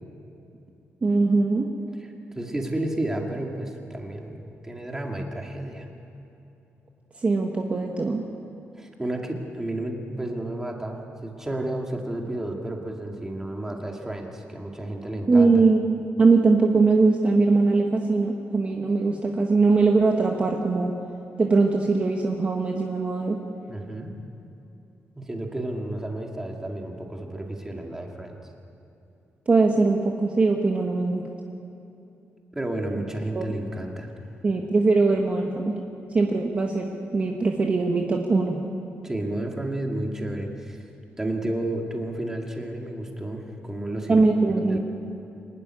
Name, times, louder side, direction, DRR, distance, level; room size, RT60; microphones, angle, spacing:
voice 1, 1.0-1.7 7.2-8.2 15.3-15.8 16.2-20.9 21.4-23.4 29.5-31.2 33.3-33.5 34.4-35.7 36.1-38.6 44.1-44.8, right 3 dB, 30° right, 1 dB, 1.3 m, -21 dB
voice 2, 2.0-4.4 4.6-5.9 8.8-15.6 23.7-24.1 25.2-28.4 32.5-34.1 39.0-40.8 41.2-44.2 44.6-44.8, right 1 dB, 10° right, 1 dB, 2.1 m, -31 dB
25.0 x 12.0 x 9.9 m, 2.8 s
wide cardioid pair, 180°, 5 cm